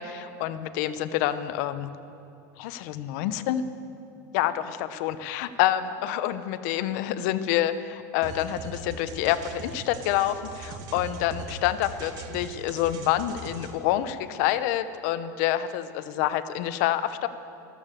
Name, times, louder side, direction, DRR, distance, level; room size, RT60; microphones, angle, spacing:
voice 1, 0.0-1.9 2.6-3.6 4.3-17.3, left 12 dB, 65° left, 12 dB, 0.8 m, -27 dB
sound 1, 8.2-13.7, right 2 dB, 40° right, 1.7 m, -40 dB
13.5 x 13.0 x 7.5 m, 2.6 s
supercardioid pair, 135°, 10 cm